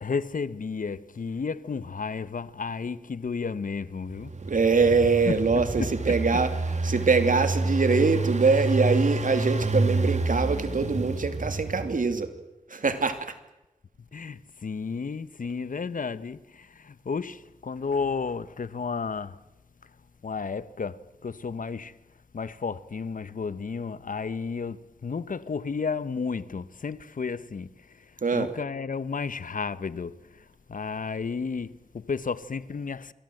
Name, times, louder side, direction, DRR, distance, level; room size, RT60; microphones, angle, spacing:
voice 1, 0.0-4.3 5.3-6.2 14.1-19.4 20.2-22.0 22.3-33.1, left 5 dB, 80° left, 1.1 m, -33 dB
Engine, 4.1-12.1, right 3 dB, 55° right, 2.2 m, -28 dB
voice 2, 4.4-6.5 6.8-12.3 12.7-13.4 28.2-28.5, right 4 dB, 80° right, 2.7 m, -23 dB
28.0 x 23.5 x 7.9 m
wide cardioid pair, 70°, 14 cm